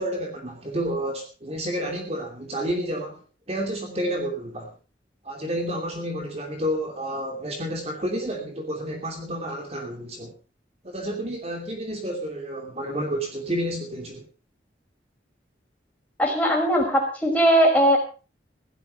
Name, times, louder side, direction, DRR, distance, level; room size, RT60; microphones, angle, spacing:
voice 1, 0.0-3.2 3.5-4.7 5.2-10.3 10.8-14.3, equal, 35° right, 2 dB, 2.8 m, -30 dB
voice 2, 16.2-18.0, right 1 dB, 10° left, 0 dB, 5.6 m, -19 dB
16.5 x 12.5 x 5.5 m, 0.36 s
head